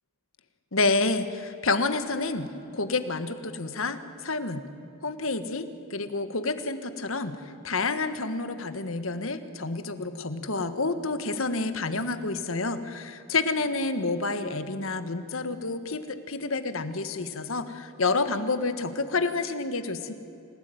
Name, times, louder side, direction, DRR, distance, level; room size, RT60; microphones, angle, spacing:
voice 1, 0.7-4.6 5.0-20.1, left 3 dB, 70° left, 10 dB, 1.7 m, -29 dB
28.0 x 17.5 x 9.4 m, 2.7 s
head